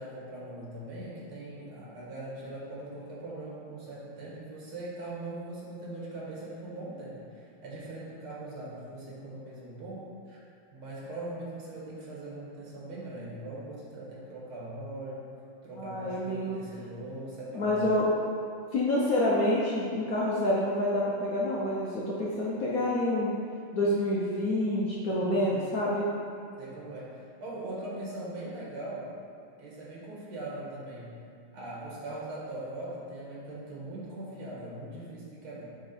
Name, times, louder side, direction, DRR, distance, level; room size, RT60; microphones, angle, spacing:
voice 1, 0.0-7.2 7.6-10.4 10.7-15.3 15.6-17.9 25.2-25.8 26.6-29.1 29.6-31.1 31.5-35.7, right 1 dB, 85° right, -6 dB, 2.4 m, -41 dB
voice 2, 15.8-16.6 17.5-18.1 18.7-23.3 23.7-26.1, left 1 dB, 60° left, -6 dB, 1.0 m, -27 dB
6.1 x 5.2 x 4.2 m, 2.4 s
omnidirectional pair, 2.3 m